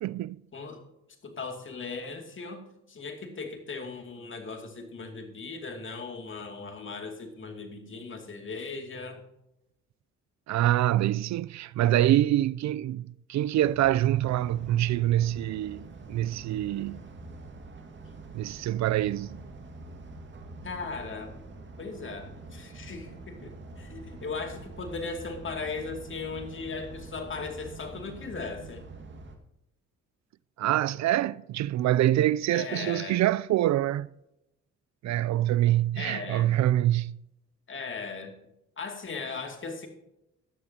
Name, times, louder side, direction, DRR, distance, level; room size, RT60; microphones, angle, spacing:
voice 1, 0.0-0.4 10.5-17.0 18.3-19.4 30.6-34.1 35.0-37.2, right 13 dB, 65° right, 0.4 m, -25 dB
voice 2, 1.2-2.6 2.9-9.2 20.6-21.3 21.8-28.9 32.5-33.2 36.0-36.5 37.7-38.3 38.8-39.9, left 4 dB, 40° left, 2.4 m, -38 dB
sound 1, 13.6-29.4, right 3 dB, 40° right, 1.9 m, -45 dB
15.5 x 10.5 x 2.8 m
cardioid pair, 90°, 30 cm